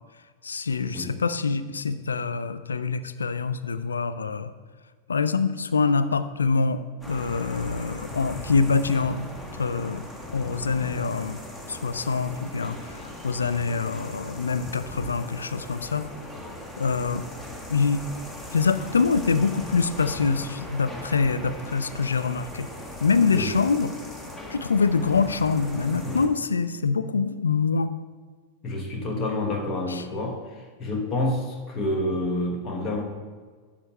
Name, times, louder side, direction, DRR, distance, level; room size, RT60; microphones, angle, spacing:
voice 1, 0.4-4.5 5.1-10.0 10.3-11.4 11.7-12.9 13.2-16.1 16.8-17.2 17.7-18.0 18.5-22.7 23.0-23.9 24.5-27.9 29.9-30.0, left 4 dB, 75° left, 13 dB, 0.3 m, -25 dB
sound 1, 7.0-26.3, left 1 dB, 10° left, 1.2 m, -39 dB
voice 2, 28.6-33.0, left 1 dB, 30° left, 1 dB, 1.0 m, -28 dB
12.0 x 7.2 x 2.2 m, 1.5 s
figure-of-eight pair, 90°, 0 cm